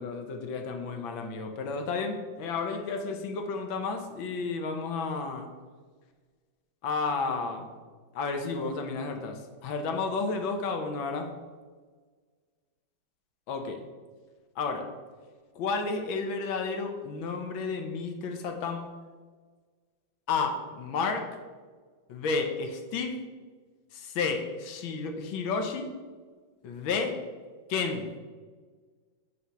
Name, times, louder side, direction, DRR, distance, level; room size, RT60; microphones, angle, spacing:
voice 1, 0.0-5.5 6.8-7.7 8.1-11.3 13.5-13.8 14.6-14.8 15.5-18.9 20.3-21.3 22.1-23.1 23.9-25.9 26.6-27.2 27.7-28.1, left 4 dB, 85° left, 5 dB, 1.7 m, -31 dB
9.3 x 3.2 x 5.5 m, 1.5 s
omnidirectional pair, 2.1 m